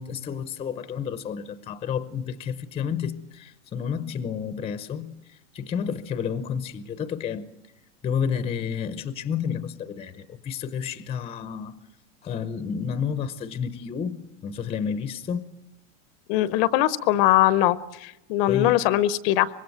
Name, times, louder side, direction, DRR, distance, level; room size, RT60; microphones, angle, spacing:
voice 1, 0.0-7.4 8.0-11.8 12.2-15.4 18.5-18.8, left 7 dB, 15° left, 0.8 m, -30 dB
voice 2, 16.3-19.5, left 14 dB, 45° left, 0.8 m, -21 dB
25.0 x 21.0 x 7.8 m
supercardioid pair, 150°, 40 cm